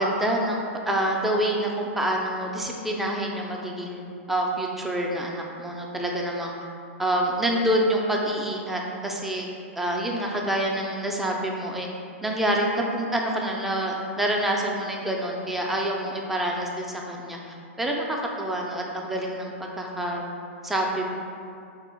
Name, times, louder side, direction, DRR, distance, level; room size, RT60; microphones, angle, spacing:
voice 1, 0.0-6.5 7.0-9.5 9.8-11.9 12.2-17.4 17.8-20.2 20.6-21.1, right 1 dB, 5° right, -1 dB, 0.3 m, -27 dB
4.3 x 2.0 x 4.3 m, 2.5 s
hypercardioid pair, 155°, 7 cm